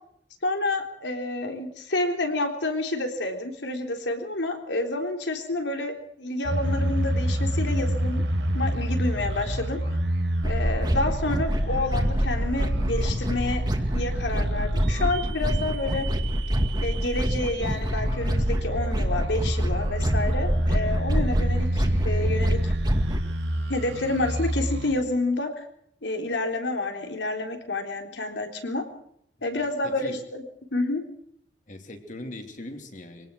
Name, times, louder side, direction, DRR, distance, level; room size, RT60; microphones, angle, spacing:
voice 1, 0.4-8.2 8.5-9.8 10.4-13.7 13.9-16.1 16.8-22.7 23.7-25.6 26.0-28.8 29.4-30.4 30.7-31.0, left 2 dB, 75° left, 4 dB, 3.8 m, -29 dB
sound 1, 6.4-24.9, right 1 dB, 90° right, 3.8 m, -29 dB
sound 2, 10.4-23.2, equal, 25° right, 2.1 m, -26 dB
voice 2, 29.8-30.2 31.7-33.3, left 1 dB, 45° left, 5 dB, 2.9 m, -40 dB
24.5 x 18.0 x 6.4 m, 0.70 s
head